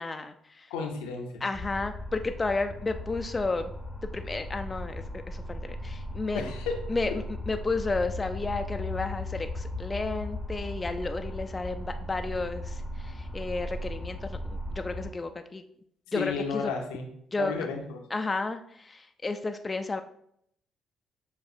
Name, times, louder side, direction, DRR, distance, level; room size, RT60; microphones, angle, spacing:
voice 1, 0.0-0.7 1.4-3.7 4.1-6.4 6.9-15.6 16.1-16.7 17.3-17.5 18.1-20.0, left 3 dB, 30° left, 7 dB, 0.3 m, -32 dB
voice 2, 0.7-1.4 6.3-6.8 16.1-17.1 17.4-18.0, left 5 dB, 75° left, 2 dB, 0.6 m, -33 dB
sound 1, 1.5-15.1, left 1 dB, 5° left, 0.7 m, -37 dB
6.9 x 2.4 x 2.6 m, 0.69 s
hypercardioid pair, 45°, 0 cm